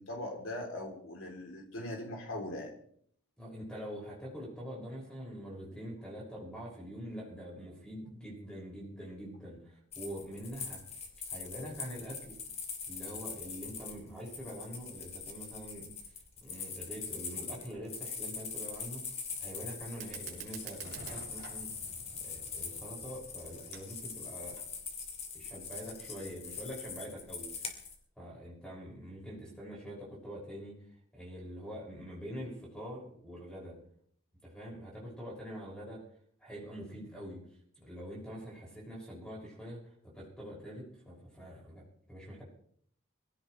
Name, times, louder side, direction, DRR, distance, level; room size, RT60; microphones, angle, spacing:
voice 1, 0.0-2.7, left 1 dB, 75° left, 0 dB, 3.5 m, -40 dB
voice 2, 3.4-12.4 12.9-15.9 16.4-19.0 19.4-21.7 22.2-24.6 25.3-27.5 28.2-30.7 31.1-33.7 34.4-36.0 36.4-37.4 37.8-42.4, equal, 5° left, -3 dB, 6.4 m, -45 dB
sound 1, 9.9-27.9, left 5 dB, 30° left, 2.6 m, -43 dB
Fire, 19.9-24.9, right 6 dB, 50° right, 3.7 m, -49 dB
23.0 x 16.5 x 3.3 m, 0.63 s
head